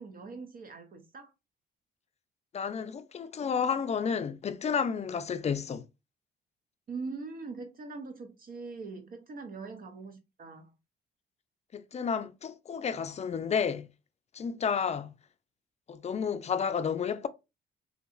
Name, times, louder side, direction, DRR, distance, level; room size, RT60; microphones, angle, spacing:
voice 1, 0.0-1.3 6.9-10.7, right 4 dB, 45° right, 0.7 m, -42 dB
voice 2, 2.5-5.8 11.7-13.9 14.3-15.1 15.9-17.3, left 6 dB, 35° left, 0.5 m, -31 dB
3.9 x 2.8 x 2.4 m
cardioid pair, 90°, 20 cm